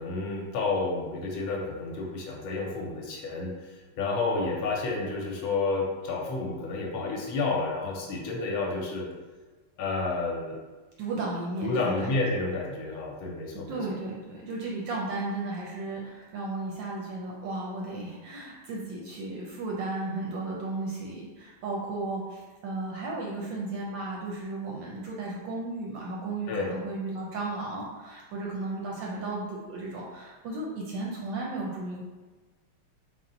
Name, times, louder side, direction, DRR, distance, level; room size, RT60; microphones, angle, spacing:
voice 1, 0.0-9.1 9.8-10.6 11.6-14.0 26.5-26.7, left 3 dB, 75° left, 0 dB, 1.4 m, -30 dB
voice 2, 11.0-12.1 13.7-32.0, right 2 dB, 75° right, -3 dB, 1.1 m, -34 dB
4.2 x 2.1 x 3.7 m, 1.3 s
omnidirectional pair, 2.4 m